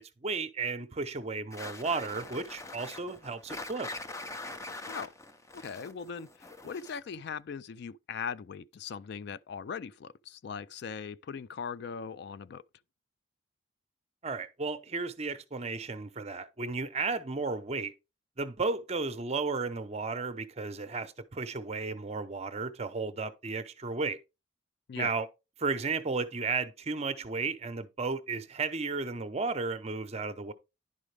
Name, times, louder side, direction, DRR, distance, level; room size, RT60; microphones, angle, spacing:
voice 1, 0.0-3.9 14.2-17.9 18.4-24.2 25.0-25.3 25.6-30.5, right 4 dB, 35° right, 0.7 m, -34 dB
sound 1, 1.5-7.2, left 2 dB, 15° left, 0.6 m, -43 dB
voice 2, 5.5-12.6 24.9-25.1, left 6 dB, 60° left, 0.3 m, -40 dB
10.5 x 5.0 x 3.3 m
head